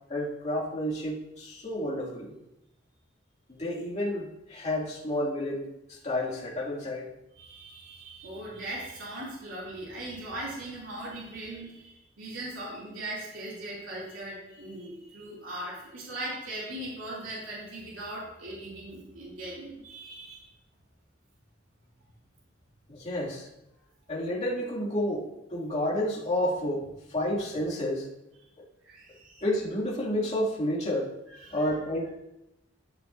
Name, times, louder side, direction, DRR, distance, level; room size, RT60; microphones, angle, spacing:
voice 1, 0.1-2.3 3.5-7.1 22.9-23.5 24.1-28.1 29.4-31.1 31.5-32.1, left 1 dB, 35° left, -7 dB, 2.4 m, -30 dB
voice 2, 7.3-20.5 28.8-29.4 31.3-31.6, right 1 dB, 85° right, -6 dB, 2.9 m, -39 dB
13.5 x 6.3 x 2.6 m, 0.88 s
head